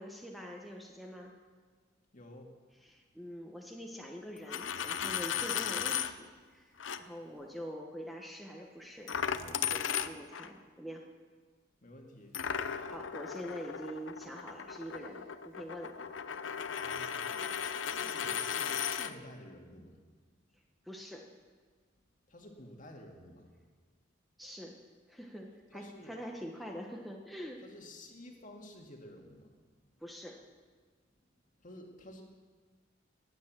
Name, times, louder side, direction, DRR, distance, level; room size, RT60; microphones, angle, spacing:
voice 1, 0.0-1.3 2.8-11.1 12.9-16.0 20.8-21.3 24.4-24.8 25.1-27.6 30.0-30.4, equal, ahead, 0 dB, 1.1 m, -45 dB
voice 2, 2.1-2.5 11.8-12.4 16.8-17.6 17.9-19.9 22.3-23.4 25.7-26.1 27.6-29.5 31.6-32.2, left 1 dB, 40° left, 2 dB, 2.1 m, -51 dB
Coin (dropping), 4.4-6.1 6.8-7.0 9.1-10.5 12.3-19.1, left 8 dB, 70° left, 0.7 m, -36 dB
19.5 x 9.3 x 7.6 m, 1.5 s
head